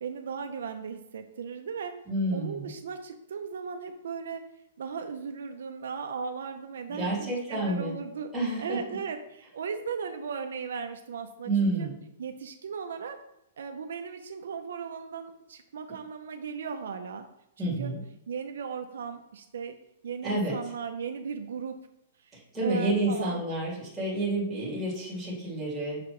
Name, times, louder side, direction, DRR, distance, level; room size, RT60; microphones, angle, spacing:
voice 1, 0.0-1.9 2.3-4.5 4.8-8.3 8.6-11.9 12.2-13.2 13.6-17.3 17.6-17.9 18.3-19.8 20.0-21.8 22.2-22.4 22.6-23.4, right 6 dB, 75° right, 6 dB, 0.6 m, -37 dB
voice 2, 2.1-2.7 6.9-7.9 8.3-8.8 11.4-11.9 17.6-18.0 20.2-20.6 22.3-26.0, right 2 dB, ahead, -11 dB, 2.3 m, -29 dB
6.8 x 4.8 x 3.1 m, 0.85 s
hypercardioid pair, 175°, 0 cm